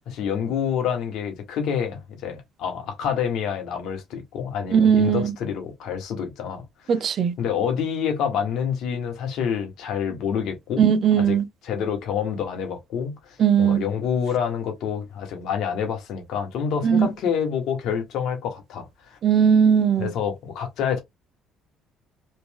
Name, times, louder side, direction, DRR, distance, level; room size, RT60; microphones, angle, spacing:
voice 1, 0.1-10.9 11.2-11.4 11.6-19.2 20.0-21.0, left 7 dB, 70° left, 1.3 m, -27 dB
voice 2, 4.7-5.2 6.9-7.3 10.8-11.4 13.4-13.8 16.8-17.1 19.2-20.1, right 7 dB, 55° right, 0.6 m, -18 dB
3.3 x 2.6 x 3.5 m
supercardioid pair, 80°, 0 cm